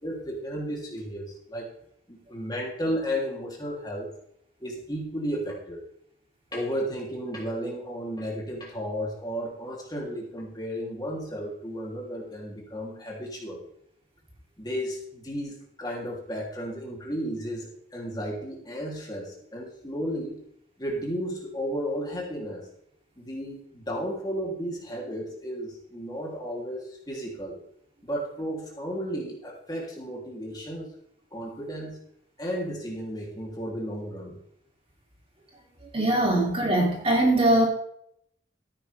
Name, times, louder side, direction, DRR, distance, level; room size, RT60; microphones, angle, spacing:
voice 1, 0.0-1.7 2.1-4.1 4.6-5.8 6.5-13.6 14.6-20.4 20.8-22.7 23.2-27.6 28.0-30.9 31.3-32.0 32.4-34.4, equal, 20° left, -2 dB, 3.2 m, -33 dB
voice 2, 35.9-37.7, right 1 dB, 30° right, -1 dB, 3.0 m, -21 dB
14.5 x 10.0 x 3.5 m, 0.70 s
head